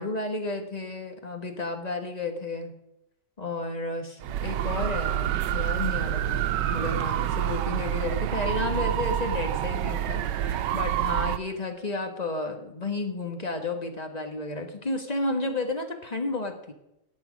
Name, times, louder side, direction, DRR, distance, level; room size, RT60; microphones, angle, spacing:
voice 1, 0.0-2.8 3.4-16.7, left 2 dB, 25° left, 5 dB, 1.3 m, -32 dB
sound 1, 4.2-11.4, right 11 dB, 90° right, 1.3 m, -27 dB
14.5 x 8.8 x 5.1 m, 0.85 s
omnidirectional pair, 1.8 m